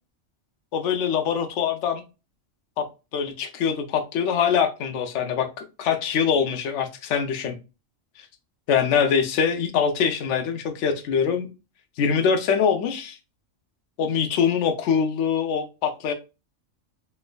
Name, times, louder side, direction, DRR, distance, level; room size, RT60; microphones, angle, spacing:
voice 1, 0.7-2.0 2.8-2.9 3.1-5.5 5.8-7.6 8.7-11.5 12.0-13.2 14.0-16.1, left 7 dB, 70° left, 7 dB, 0.9 m, -23 dB
3.2 x 3.0 x 2.2 m, 0.29 s
omnidirectional pair, 1.3 m